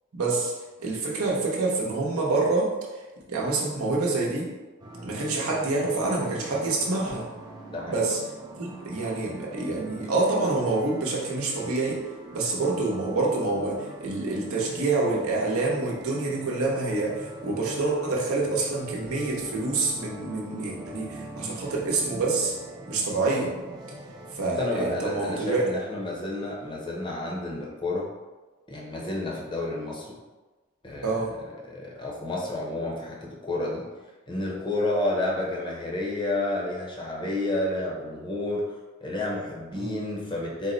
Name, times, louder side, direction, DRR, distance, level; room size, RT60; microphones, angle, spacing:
voice 1, 0.1-0.5 0.8-3.0 3.3-4.5 5.0-7.3 7.9-8.2 8.6-12.0 12.3-22.6 22.9-23.5 24.3-25.6 31.0-31.3 39.7-40.0, right 3 dB, 85° right, -3 dB, 0.8 m, -27 dB
sound 1, 4.8-24.4, right 1 dB, 20° right, 0.4 m, -43 dB
voice 2, 7.7-8.0 24.6-28.1 28.7-30.2 30.8-31.3 31.6-33.9 34.3-40.7, left 2 dB, 20° left, -2 dB, 0.6 m, -30 dB
4.1 x 2.1 x 3.8 m, 1.2 s
head